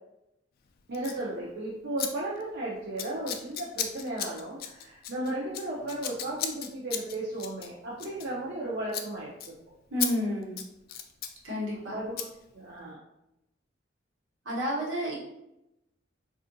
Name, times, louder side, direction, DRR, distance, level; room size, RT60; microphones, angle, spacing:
Scissors, 0.9-1.2 2.0-2.1 2.4-2.6 3.0-8.6 8.9-9.1 9.4-9.5 10.0-10.1 10.4-11.4 12.2-12.3, left 9 dB, 50° left, 0.3 m, -35 dB
voice 1, 0.9-9.5 11.9-12.3 12.5-13.0, right 1 dB, 60° right, -5 dB, 0.5 m, -35 dB
voice 2, 9.9-10.6 11.4-11.9 14.4-15.2, equal, 85° right, -5 dB, 1.1 m, -30 dB
3.5 x 2.4 x 2.6 m, 0.88 s
head